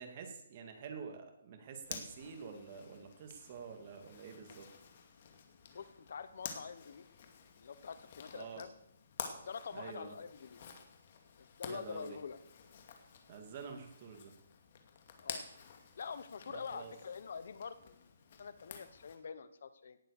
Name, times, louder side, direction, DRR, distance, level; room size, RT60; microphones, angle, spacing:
voice 1, 0.0-4.7 8.3-8.6 9.7-10.1 11.7-12.2 13.3-14.3 16.5-16.9, right 5 dB, 35° right, 4 dB, 2.5 m, -48 dB
Zipper (clothing), 1.8-19.2, left 6 dB, 40° left, 2.3 m, -51 dB
voice 2, 5.7-7.0 7.6-8.7 9.4-10.6 11.4-12.4 15.2-15.4 16.0-18.1 18.4-20.0, left 6 dB, 60° left, 14 dB, 1.0 m, -46 dB
18.0 x 8.1 x 6.7 m, 0.80 s
hypercardioid pair, 165°, 0 cm